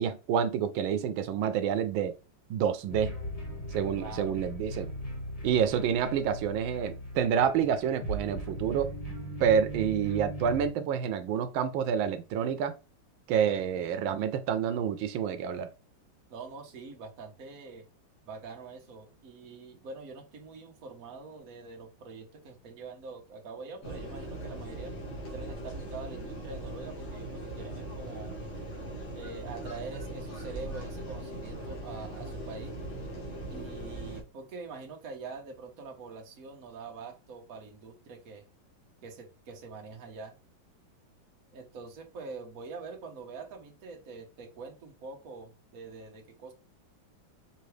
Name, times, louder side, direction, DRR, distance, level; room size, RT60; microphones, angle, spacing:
voice 1, 0.0-2.1 2.5-3.1 3.7-4.9 5.4-8.9 9.4-12.7 13.3-15.7, right 8 dB, 85° right, 1.4 m, -28 dB
sound 1, 2.9-10.7, right 1 dB, 20° left, 1.3 m, -38 dB
voice 2, 4.0-4.4 16.3-17.9 18.2-25.0 25.3-28.4 29.1-32.8 33.5-38.4 39.0-40.4 41.5-46.5, right 4 dB, 50° right, 1.3 m, -44 dB
sound 2, 23.8-34.2, right 1 dB, 90° left, 2.4 m, -40 dB
5.8 x 2.8 x 3.2 m
omnidirectional pair, 2.1 m